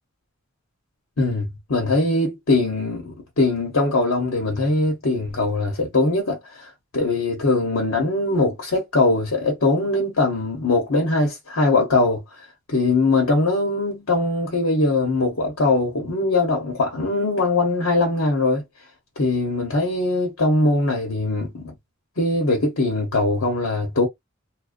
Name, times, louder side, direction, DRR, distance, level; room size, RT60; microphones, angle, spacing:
voice 1, 1.2-12.2 12.7-18.6 19.2-21.6 22.2-24.1, left 2 dB, 90° left, 1.0 m, -21 dB
2.4 x 2.2 x 2.5 m
head